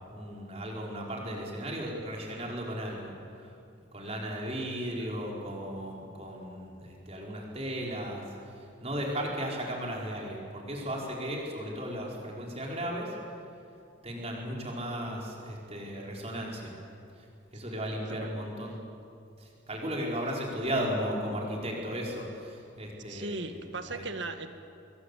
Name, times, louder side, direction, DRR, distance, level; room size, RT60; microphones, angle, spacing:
voice 1, 0.1-3.1 3.9-8.2 8.8-13.1 14.0-16.7 17.5-18.8 19.4-24.1, equal, 30° right, -1 dB, 5.0 m, -35 dB
voice 2, 23.1-24.5, right 2 dB, 60° right, 8 dB, 1.9 m, -38 dB
26.5 x 22.5 x 8.5 m, 2.5 s
head